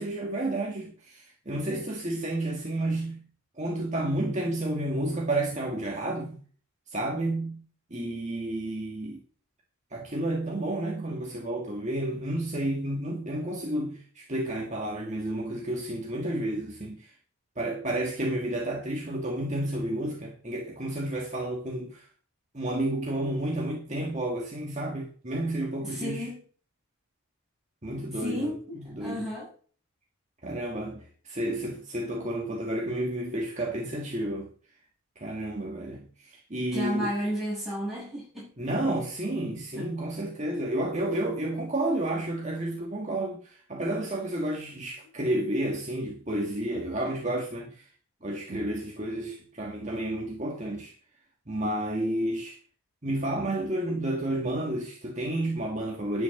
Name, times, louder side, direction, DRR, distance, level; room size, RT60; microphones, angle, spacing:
voice 1, 0.0-3.3 3.6-6.4 6.9-7.6 7.9-9.2 9.9-17.1 17.6-22.1 22.5-26.3 27.8-29.3 30.4-34.5 35.2-37.1 38.6-47.9 48.2-50.9 51.5-52.6 53.0-56.2, right 1 dB, 30° right, 1.8 m, -31 dB
voice 2, 25.8-26.4 28.2-29.5 36.7-38.5 39.7-39.9, equal, ahead, 7.2 m, -32 dB
11.0 x 6.4 x 7.1 m
head